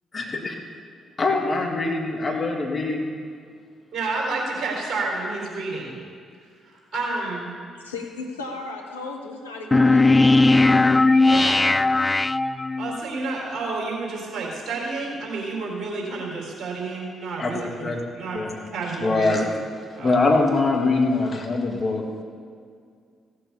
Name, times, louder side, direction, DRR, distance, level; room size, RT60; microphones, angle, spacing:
voice 1, 0.1-0.5 1.2-3.1 17.4-18.0 18.3-18.6 19.0-19.6 20.0-22.0, left 3 dB, 35° left, 1 dB, 2.1 m, -23 dB
voice 2, 3.9-6.0 6.6-7.5 11.1-11.7 12.8-17.9 18.1-18.4 18.7-19.4 19.9-20.3, right 3 dB, 50° right, -2 dB, 4.1 m, -30 dB
voice 3, 7.7-10.5, left 3 dB, 85° left, 1 dB, 1.0 m, -36 dB
sound 1, 9.7-13.0, left 2 dB, 20° left, 0.3 m, -17 dB
16.0 x 7.6 x 6.9 m, 2.1 s
figure-of-eight pair, 40°, 0 cm